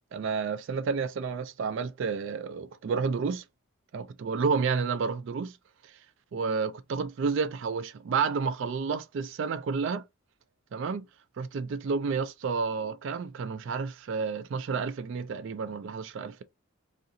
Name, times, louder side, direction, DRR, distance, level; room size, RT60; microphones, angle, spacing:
voice 1, 0.1-3.4 3.9-5.6 6.3-10.0 10.7-11.0 11.4-16.4, right 5 dB, 55° right, 0.3 m, -30 dB
2.7 x 2.5 x 2.5 m
head